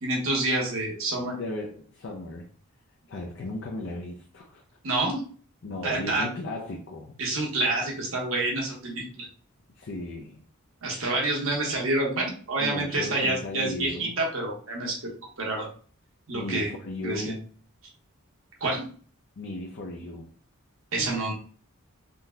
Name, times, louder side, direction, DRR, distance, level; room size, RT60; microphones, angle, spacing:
voice 1, 0.0-1.3 4.8-5.2 5.8-6.3 7.2-9.3 10.8-15.1 15.4-15.7 16.3-16.7 17.0-17.3 18.6-18.9 20.9-21.3, right 2 dB, 65° right, -2 dB, 1.1 m, -28 dB
voice 2, 1.2-2.5 3.1-4.6 5.6-7.2 9.8-10.4 10.9-11.1 12.6-14.2 16.3-17.5 19.4-20.3, left 2 dB, 55° left, 1 dB, 0.5 m, -36 dB
3.7 x 2.6 x 2.3 m, 0.43 s
head